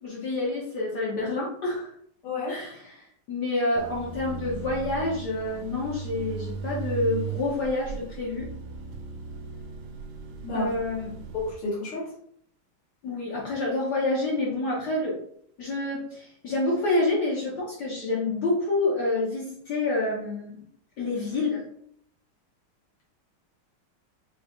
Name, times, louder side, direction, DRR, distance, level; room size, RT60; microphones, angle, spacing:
voice 1, 0.0-1.9 2.5-8.5 10.5-11.1 13.0-15.2 15.6-20.6 21.0-21.6, left 2 dB, 60° left, -5 dB, 1.4 m, -28 dB
voice 2, 2.2-2.6 10.4-10.7 11.3-12.1, left 2 dB, 80° left, -6 dB, 2.3 m, -30 dB
sound 1, 3.8-11.5, right 6 dB, 70° right, 1.2 m, -37 dB
6.3 x 3.2 x 2.4 m, 0.66 s
omnidirectional pair, 2.3 m